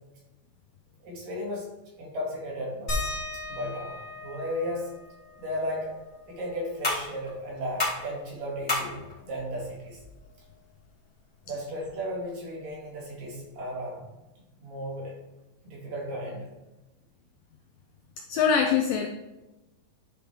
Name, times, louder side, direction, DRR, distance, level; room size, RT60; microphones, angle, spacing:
voice 1, 1.0-1.7 2.0-2.9 3.5-4.9 5.4-5.9 6.3-10.0 11.5-14.0 14.6-15.1 15.6-16.5, equal, 65° right, -3 dB, 3.3 m, -35 dB
sound 1, 2.9-8.0 8.4-8.5 8.8-10.5 11.8-11.9 12.6-12.7, left 2 dB, 40° left, 1.1 m, -39 dB
sound 2, 5.3-12.3, left 2 dB, 20° left, 1.8 m, -36 dB
voice 2, 18.3-19.1, left 6 dB, 85° left, 4 dB, 1.9 m, -23 dB
11.0 x 5.1 x 3.2 m, 1.0 s
omnidirectional pair, 4.5 m